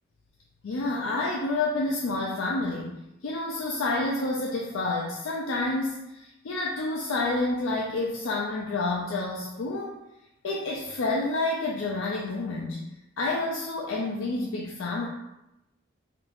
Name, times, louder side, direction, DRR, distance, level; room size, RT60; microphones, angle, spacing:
voice 1, 0.6-3.0 3.2-10.0 10.4-12.8 13.2-15.1, left 2 dB, 90° left, -3 dB, 0.4 m, -29 dB
3.5 x 2.4 x 2.6 m, 0.90 s
head